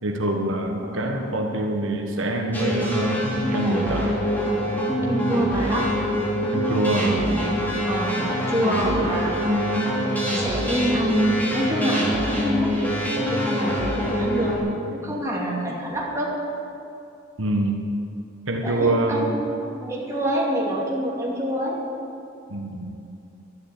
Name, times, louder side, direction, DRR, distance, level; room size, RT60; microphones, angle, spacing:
voice 1, 0.0-3.2 3.5-4.1 6.5-7.2 17.4-17.9 18.5-19.4 22.5-23.0, right 1 dB, 75° right, 2 dB, 1.5 m, -25 dB
sound 1, 2.5-14.6, equal, 10° left, 3.0 m, -25 dB
voice 2, 5.0-6.0 7.0-10.0 10.3-16.4 18.6-21.8, right 1 dB, 15° right, -4 dB, 2.6 m, -26 dB
12.5 x 11.0 x 8.5 m, 2.7 s
head